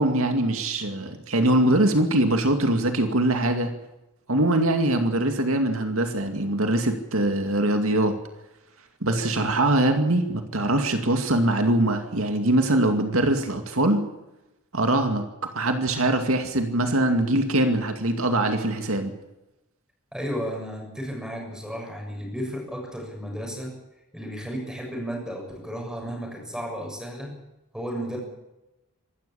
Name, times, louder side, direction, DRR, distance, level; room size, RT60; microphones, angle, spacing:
voice 1, 0.0-3.7 4.3-8.2 9.0-14.1 14.7-15.2 15.5-19.1, right 1 dB, 70° right, 6 dB, 2.3 m, -22 dB
voice 2, 20.1-23.7 24.1-27.3 27.7-28.2, equal, 5° right, 0 dB, 6.9 m, -33 dB
25.5 x 13.5 x 8.6 m, 0.96 s
head